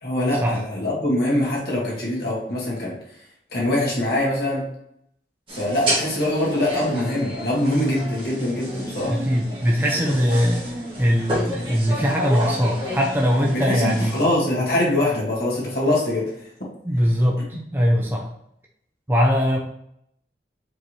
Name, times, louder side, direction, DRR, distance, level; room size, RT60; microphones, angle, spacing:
voice 1, 0.0-3.0 3.5-4.7 5.5-9.2 10.0-10.1 13.5-16.5, left 1 dB, 60° left, -5 dB, 1.9 m, -23 dB
sound 1, 5.5-14.2, equal, 30° right, 1.7 m, -30 dB
voice 2, 9.0-10.7 11.0-14.2 16.8-18.3 19.1-19.6, equal, 10° right, -2 dB, 0.5 m, -21 dB
4.8 x 3.5 x 3.1 m, 0.73 s
head